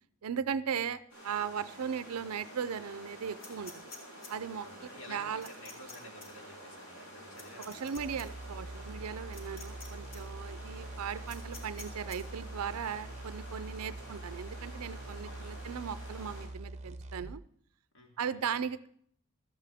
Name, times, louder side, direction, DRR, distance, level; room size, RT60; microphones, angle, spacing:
voice 1, 0.2-3.9 4.3-5.5 7.6-17.4 18.2-18.9, right 7 dB, 85° right, 14 dB, 0.5 m, -37 dB
sound 1, 1.1-16.5, equal, 90° left, 7.3 m, -50 dB
sound 2, 3.4-4.3 5.4-6.0 6.2-6.3 7.4-8.2 9.3-9.9 10.1-10.2 11.3-12.2, left 3 dB, 40° left, 2.7 m, -48 dB
voice 2, 4.6-8.0 15.2-15.6 17.9-18.4, left 1 dB, 60° left, 1 dB, 2.6 m, -52 dB
sound 3, 8.0-17.4, right 2 dB, 30° right, 0.6 m, -44 dB
16.5 x 13.0 x 3.5 m, 0.64 s
head